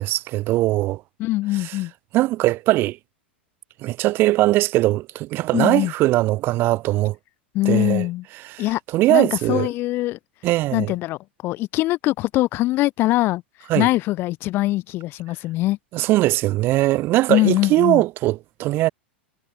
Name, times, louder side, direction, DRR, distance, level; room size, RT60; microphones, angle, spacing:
voice 1, 0.0-1.0 1.5-1.8 2.1-3.0 3.8-7.2 7.6-8.1 8.4-9.7 10.4-10.9 13.7-13.9 15.9-18.9, right 17 dB, 35° right, 3.3 m, -20 dB
voice 2, 1.2-1.9 5.5-5.9 7.5-8.2 8.6-8.8 9.1-10.2 10.7-13.4 13.8-15.8 17.3-18.0, left 17 dB, 35° left, 5.9 m, -22 dB
figure-of-eight pair, 90°, 6 cm